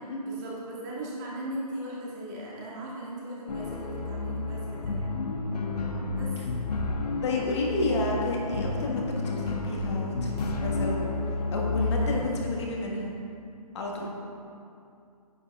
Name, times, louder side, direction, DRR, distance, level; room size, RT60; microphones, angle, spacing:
voice 1, 0.3-5.2 6.2-6.3 11.8-12.2, right 1 dB, 25° right, -5 dB, 1.8 m, -38 dB
sound 1, 3.5-12.3, left 3 dB, 75° left, 1.0 m, -31 dB
voice 2, 7.2-11.1 11.5-13.1 13.7-14.1, left 2 dB, 45° left, -2 dB, 1.5 m, -30 dB
9.8 x 7.9 x 3.5 m, 2.5 s
hypercardioid pair, 150°, 20 cm